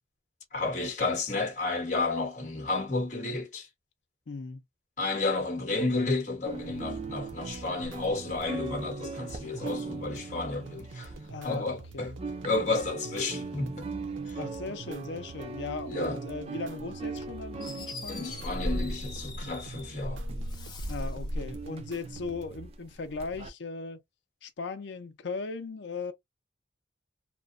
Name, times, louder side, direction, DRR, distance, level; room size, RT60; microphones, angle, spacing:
voice 1, 0.5-3.7 5.0-11.1 11.4-12.1 12.4-13.9 14.3-14.4 15.9-16.2 18.1-20.2, left 3 dB, 40° left, 1.1 m, -31 dB
voice 2, 4.3-4.6 11.3-12.2 14.4-18.4 20.9-24.0 24.4-26.1, left 4 dB, 70° left, 0.5 m, -38 dB
sound 1, 6.5-11.8 12.0-23.5, right 2 dB, 30° right, 0.4 m, -39 dB
sound 2, 6.7-22.7, right 3 dB, 90° right, 0.5 m, -46 dB
Fireworks, 17.6-20.0 20.4-21.2, left 4 dB, 25° left, 0.5 m, -45 dB
2.9 x 2.2 x 2.4 m
head